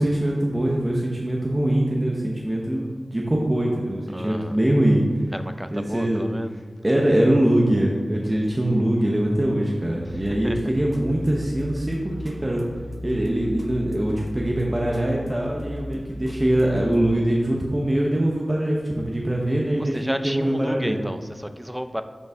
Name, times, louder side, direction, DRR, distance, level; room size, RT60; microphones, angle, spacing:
voice 1, 0.0-5.2 5.7-6.3 6.8-12.6 13.0-21.0, right 1 dB, 25° right, -2 dB, 0.9 m, -23 dB
voice 2, 4.1-4.6 5.3-6.5 10.1-10.6 19.8-22.0, equal, 5° right, 10 dB, 0.4 m, -32 dB
sound 1, 10.1-17.2, left 1 dB, 30° left, 0.9 m, -36 dB
10.5 x 4.0 x 3.6 m, 1.5 s
cardioid pair, 45°, 0 cm